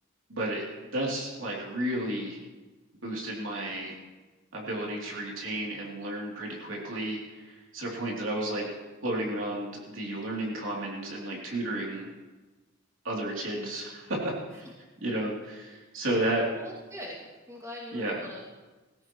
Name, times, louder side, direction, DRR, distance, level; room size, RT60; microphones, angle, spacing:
voice 1, 0.3-2.4 3.0-4.0 4.5-8.7 9.0-12.1 13.0-14.6 15.0-16.5 17.9-18.2, right 1 dB, 70° right, -3 dB, 3.3 m, -32 dB
voice 2, 8.2-8.7 16.5-17.2 17.5-18.4, left 1 dB, 15° right, -5 dB, 2.5 m, -43 dB
18.5 x 15.5 x 3.2 m, 1.2 s
head